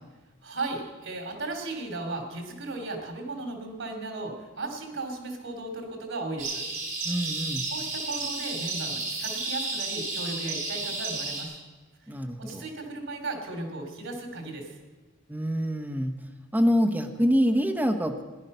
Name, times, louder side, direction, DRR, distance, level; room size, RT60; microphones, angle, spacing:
voice 1, 0.4-6.6 7.7-11.6 12.0-12.1 12.4-14.8, right 2 dB, 85° right, 3 dB, 3.0 m, -36 dB
sound 1, 6.4-11.4, right 3 dB, 45° right, 3.7 m, -32 dB
voice 2, 7.0-7.7 12.1-12.7 15.3-16.1 16.5-18.2, equal, 10° right, 4 dB, 1.0 m, -25 dB
17.5 x 10.5 x 5.6 m, 1.2 s
head